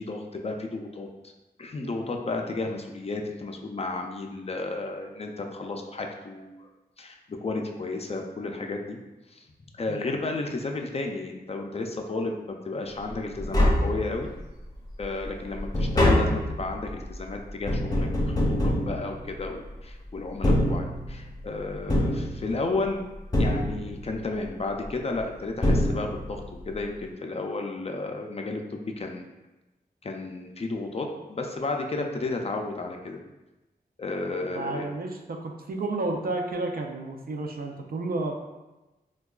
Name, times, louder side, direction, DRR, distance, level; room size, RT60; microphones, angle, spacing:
voice 1, 0.0-1.3 1.6-6.7 7.0-9.0 9.3-9.4 9.8-14.3 15.0-23.1 23.4-29.2 30.0-33.2 34.0-34.9, left 3 dB, 35° left, 2 dB, 0.4 m, -33 dB
Tap, 13.1-13.2 13.4-14.5 14.9-19.7 20.3-21.3 21.9-22.9 23.3-24.2 25.2-25.3 25.6-26.5 26.7-26.8, left 1 dB, 20° left, 0.8 m, -25 dB
voice 2, 34.5-38.3, right 2 dB, 60° right, 3 dB, 0.4 m, -32 dB
4.4 x 2.2 x 2.3 m, 1.1 s
wide cardioid pair, 75°, 17 cm